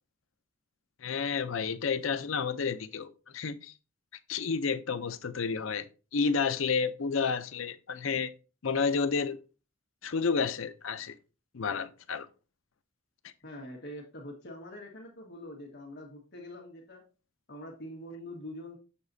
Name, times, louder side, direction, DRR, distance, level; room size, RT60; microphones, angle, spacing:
voice 1, 1.0-3.7 4.3-5.9 6.1-8.3 8.6-9.4 10.0-11.1 11.5-12.3, left 5 dB, 80° left, 0.6 m, -30 dB
voice 2, 13.4-17.1 17.5-18.8, left 1 dB, 60° left, 1.5 m, -44 dB
7.0 x 6.9 x 2.7 m
head